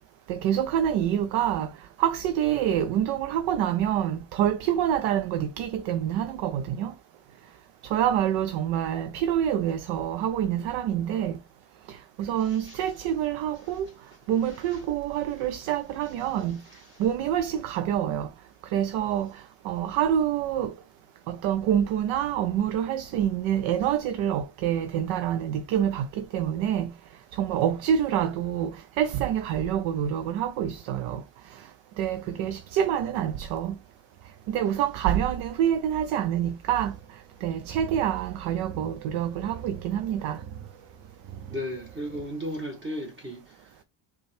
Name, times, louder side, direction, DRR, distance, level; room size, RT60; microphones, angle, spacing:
voice 1, 0.3-1.7 2.0-6.9 7.8-11.4 11.9-13.9 14.3-16.6 17.0-18.3 18.7-20.7 21.3-26.9 27.3-31.2 32.0-33.8 34.5-37.0 37.4-40.4, right 10 dB, 80° right, 0.6 m, -26 dB
voice 2, 12.4-12.9 13.6-13.8 14.4-14.8 16.4-17.0 32.2-32.4 41.5-43.4, equal, 25° right, 1.2 m, -37 dB
sound 1, 31.8-42.2, right 9 dB, 45° right, 1.1 m, -46 dB
5.1 x 2.3 x 3.2 m
cardioid pair, 90°, 47 cm